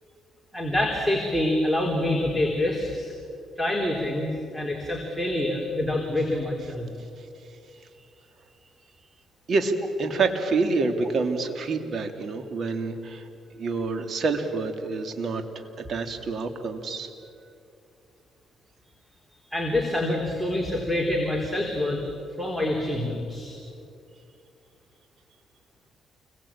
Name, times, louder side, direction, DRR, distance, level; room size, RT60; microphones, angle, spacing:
voice 1, 0.5-3.1 3.6-6.9 19.3-22.0 22.4-23.6, left 1 dB, 5° right, 1 dB, 4.0 m, -26 dB
voice 2, 9.5-13.3 13.6-15.6 15.9-17.1, right 3 dB, 55° right, 7 dB, 2.9 m, -27 dB
29.0 x 22.5 x 8.8 m, 2.5 s
cardioid pair, 90°, 0 cm